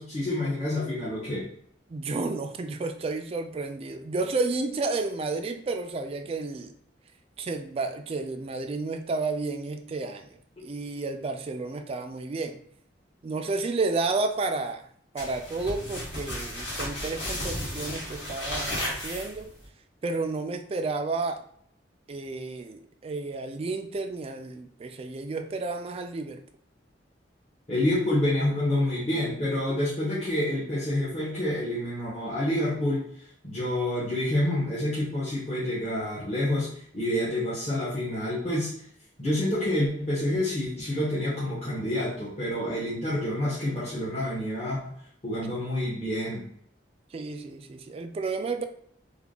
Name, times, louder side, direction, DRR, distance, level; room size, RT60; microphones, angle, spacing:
voice 1, 0.0-1.5 27.7-33.0 33.4-38.7 39.2-44.9 45.2-46.4, left 1 dB, 35° left, -10 dB, 1.0 m, -28 dB
voice 2, 1.9-6.7 7.4-12.6 13.2-14.9 15.1-19.5 20.0-21.4 22.1-26.4 47.1-48.6, right 3 dB, 35° right, 7 dB, 0.3 m, -31 dB
sound 1, 15.2-19.6, left 1 dB, 80° left, 1.5 m, -34 dB
3.4 x 2.2 x 3.8 m, 0.66 s
head